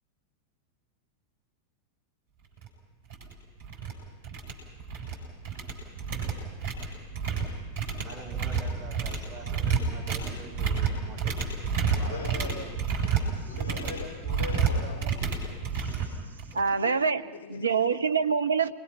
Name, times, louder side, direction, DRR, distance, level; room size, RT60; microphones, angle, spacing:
sound 1, 2.6-2.7 3.1-3.3 3.6-3.9 4.2-5.2 5.4-16.7, right 6 dB, 55° right, 7.4 m, -30 dB
voice 1, 7.9-11.5 11.9-12.6 16.5-16.9, right 4 dB, 20° right, 7.4 m, -45 dB
voice 2, 12.0-12.7 13.5-15.1 17.3-17.6, left 4 dB, 55° left, 5.9 m, -40 dB
voice 3, 16.5-17.2 17.5-18.7, right 5 dB, 75° right, 0.8 m, -25 dB
29.0 x 21.5 x 6.0 m
figure-of-eight pair, 90°, 0 cm